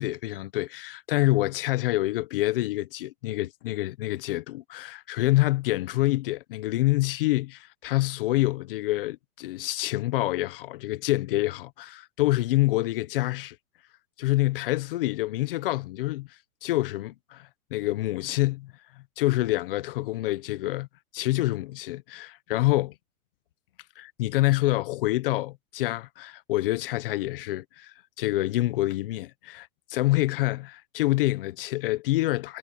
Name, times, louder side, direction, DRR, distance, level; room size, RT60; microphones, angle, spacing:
voice 1, 0.0-13.5 14.2-16.3 16.6-18.7 19.2-20.9 21.1-22.9 24.0-32.6, left 17 dB, 35° left, 1.1 m, -27 dB
hypercardioid pair, 165°, 46 cm